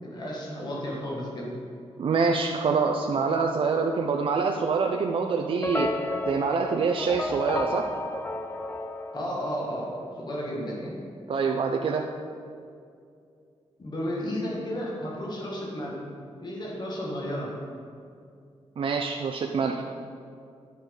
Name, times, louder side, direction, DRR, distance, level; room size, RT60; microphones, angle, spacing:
voice 1, 0.0-1.5 9.1-11.0 13.8-16.0 16.4-17.5, equal, 40° left, -3 dB, 1.7 m, -33 dB
voice 2, 2.0-5.9 6.3-7.9 11.3-12.0 18.8-19.9, right 5 dB, 55° right, 2 dB, 0.5 m, -25 dB
sound 1, 5.6-9.9, left 2 dB, 20° left, 0.4 m, -32 dB
10.5 x 5.4 x 3.8 m, 2.4 s
wide cardioid pair, 115°, 11 cm